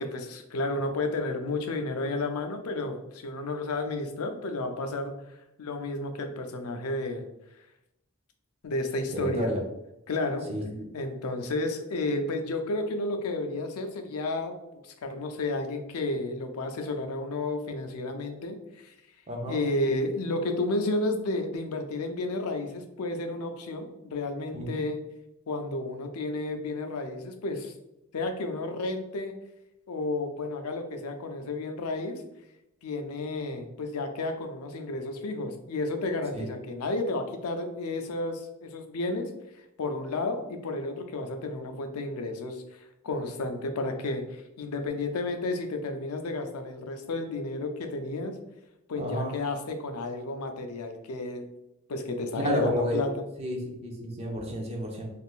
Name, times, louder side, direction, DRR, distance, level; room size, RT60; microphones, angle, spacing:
voice 1, 0.0-5.1 5.6-7.2 8.6-9.6 10.1-10.5 10.9-18.9 19.5-25.0 25.5-27.7 28.1-29.3 29.9-32.2 32.8-39.3 39.8-48.4 48.9-51.5 51.9-53.3, left 2 dB, 85° left, 6 dB, 0.5 m, -32 dB
voice 2, 9.1-9.6 10.5-10.8 19.3-19.6 24.5-24.8 36.3-36.5 49.0-49.4 52.3-53.0 53.4-55.1, equal, 30° right, 0 dB, 0.6 m, -31 dB
3.6 x 2.4 x 2.4 m, 0.89 s
head